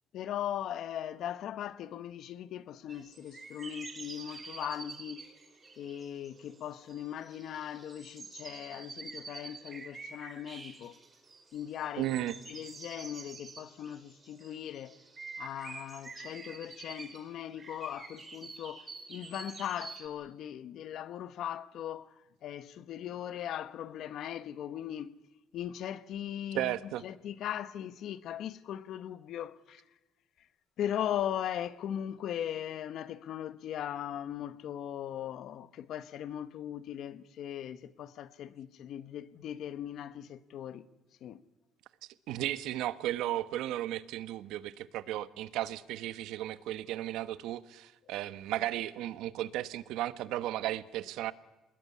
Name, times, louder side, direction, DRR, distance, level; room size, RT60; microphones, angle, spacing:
voice 1, 0.1-5.3 5.8-11.0 11.5-12.1 12.5-15.0 15.4-25.2 25.5-29.8 30.8-40.9 41.2-41.4, left 10 dB, 65° left, 1.2 m, -39 dB
sound 1, 2.9-20.1, right 4 dB, 25° right, 4.3 m, -48 dB
voice 2, 12.0-12.3 26.5-27.0 42.3-51.3, right 13 dB, 85° right, 1.2 m, -35 dB
26.5 x 20.5 x 9.8 m
cardioid pair, 140°, 0 cm